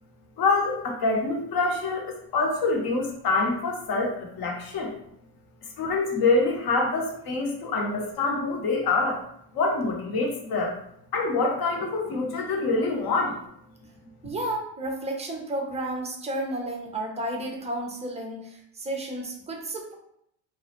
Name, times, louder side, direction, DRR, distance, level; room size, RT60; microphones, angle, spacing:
voice 1, 0.4-4.9 5.8-9.2 9.5-10.7 11.1-13.4, left 3 dB, 50° left, 1 dB, 0.8 m, -25 dB
voice 2, 14.2-19.9, right 1 dB, 15° right, 1 dB, 0.4 m, -32 dB
2.3 x 2.0 x 2.8 m, 0.72 s
supercardioid pair, 80°, 50 cm